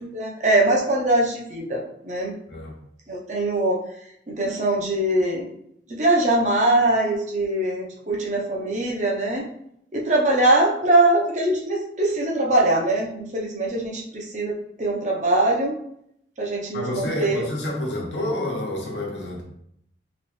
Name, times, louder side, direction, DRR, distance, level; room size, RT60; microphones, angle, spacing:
voice 1, 0.0-2.3 3.1-3.8 4.3-5.5 5.9-9.4 9.9-15.8 16.4-17.4, right 2 dB, 45° right, -1 dB, 0.7 m, -22 dB
voice 2, 16.7-19.4, left 1 dB, 90° left, -2 dB, 1.0 m, -28 dB
3.0 x 3.0 x 3.1 m, 0.73 s
head